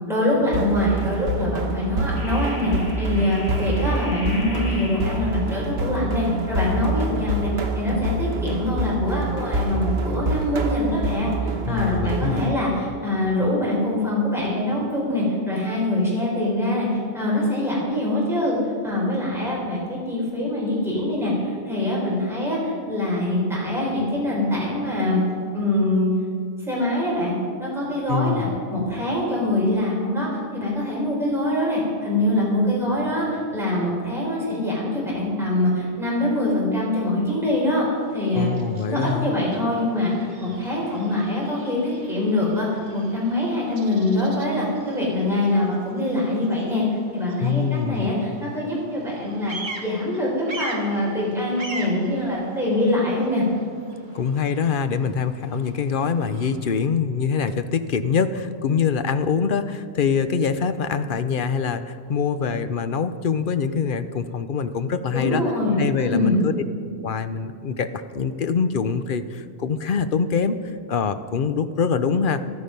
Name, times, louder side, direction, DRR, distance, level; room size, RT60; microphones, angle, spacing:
voice 1, 0.0-18.6 18.8-25.2 25.5-26.1 26.7-27.3 27.6-30.3 30.5-37.9 38.1-38.5 38.8-42.7 42.9-46.8 47.1-49.5 49.8-53.4 65.1-66.4, left 1 dB, ahead, -6 dB, 4.4 m, -24 dB
sound 1, 0.5-12.5, right 2 dB, 55° right, 1.3 m, -26 dB
sound 2, 1.0-1.3 2.2-5.5, left 1 dB, 75° left, 3.6 m, -39 dB
voice 2, 11.7-12.5 28.1-28.6 38.3-39.3 47.4-48.1 54.1-65.4 65.8-66.6 67.0-72.4, left 6 dB, 55° left, 11 dB, 0.7 m, -24 dB
Bird vocalization bird call bird song, 37.9-56.7, right 2 dB, 40° right, 1.5 m, -42 dB
14.5 x 12.5 x 5.3 m, 2.2 s
omnidirectional pair, 1.2 m